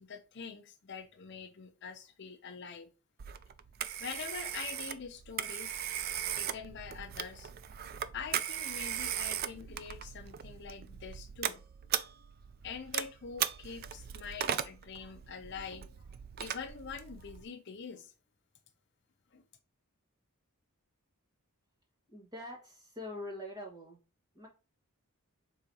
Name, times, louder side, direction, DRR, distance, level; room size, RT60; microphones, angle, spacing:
voice 1, 0.0-2.9 4.0-5.8 6.4-7.5 8.1-11.6 12.6-16.0 16.4-18.1 19.3-19.4, left 6 dB, 50° left, 0.5 m, -45 dB
Telephone, 3.2-17.4, right 9 dB, 45° right, 0.3 m, -38 dB
voice 2, 22.1-24.0 24.3-24.5, left 1 dB, 15° right, 1.5 m, -44 dB
4.9 x 3.8 x 2.7 m
head